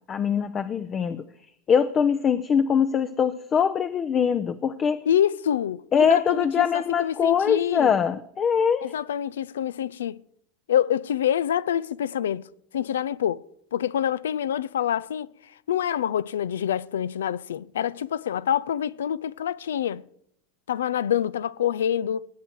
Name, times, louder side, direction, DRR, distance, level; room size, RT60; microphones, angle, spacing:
voice 1, 0.1-1.2 1.7-5.0 5.9-8.9, left 7 dB, 35° left, 0.6 m, -22 dB
voice 2, 5.1-7.9 8.8-10.2 10.7-12.5 12.7-13.5 13.7-20.0 20.7-22.3, left 10 dB, 80° left, 0.4 m, -26 dB
19.5 x 7.7 x 4.6 m
hypercardioid pair, 90°, 0 cm